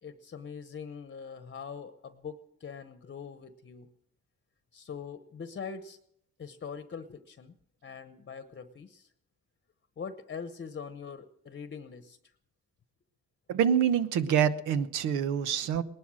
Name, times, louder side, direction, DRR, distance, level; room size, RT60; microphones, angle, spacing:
voice 1, 0.0-3.9 4.7-6.0 6.4-7.5 7.8-9.1 10.0-12.3 15.7-15.8, left 6 dB, 40° left, 11 dB, 1.0 m, -43 dB
voice 2, 13.5-15.8, right 8 dB, 85° right, 13 dB, 1.0 m, -26 dB
19.5 x 11.5 x 6.3 m, 0.72 s
cardioid pair, 90°, 30 cm